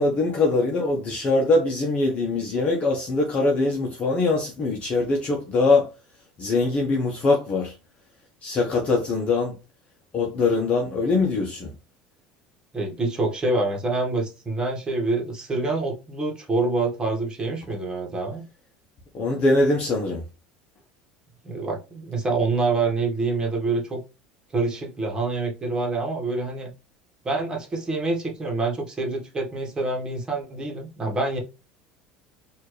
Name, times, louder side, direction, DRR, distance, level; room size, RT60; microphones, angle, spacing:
voice 1, 0.0-5.9 6.4-7.7 8.4-9.6 10.1-11.7 19.1-20.2, left 3 dB, 40° left, 1.1 m, -22 dB
voice 2, 12.7-18.4 21.4-24.0 24.5-26.7 27.2-31.4, right 3 dB, 25° right, 1.6 m, -26 dB
4.3 x 2.7 x 3.2 m
supercardioid pair, 110°, 3 cm